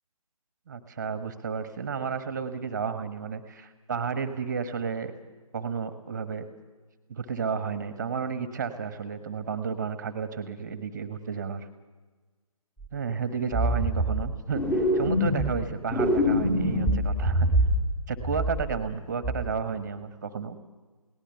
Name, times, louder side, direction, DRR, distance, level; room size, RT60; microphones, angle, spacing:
voice 1, 0.7-5.1 5.5-6.4 7.1-11.7 12.9-17.5 18.1-20.6, right 6 dB, 30° right, 10 dB, 1.3 m, -32 dB
sound 1, 12.8-12.9 13.5-14.3 14.5-15.6 15.9-17.9 18.2-18.9 19.2-19.5, equal, 10° left, 2.2 m, -25 dB
22.0 x 18.5 x 6.9 m, 1.3 s
figure-of-eight pair, 145°, 19 cm